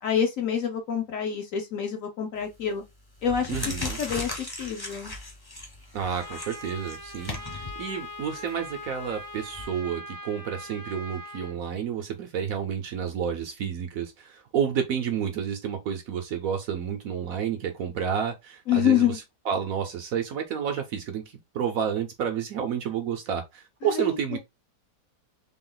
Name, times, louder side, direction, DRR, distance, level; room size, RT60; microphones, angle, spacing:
voice 1, 0.0-2.8 3.2-5.1 18.7-19.2 23.9-24.4, left 9 dB, 60° left, 1.0 m, -27 dB
sound 1, 2.4-2.7 3.1-9.6, left 2 dB, 20° left, 0.6 m, -38 dB
voice 2, 3.5-4.0 5.9-24.4, right 8 dB, 65° right, 0.9 m, -30 dB
Trumpet, 6.2-11.5, left 1 dB, 25° right, 0.4 m, -41 dB
3.7 x 2.4 x 3.8 m
omnidirectional pair, 1.8 m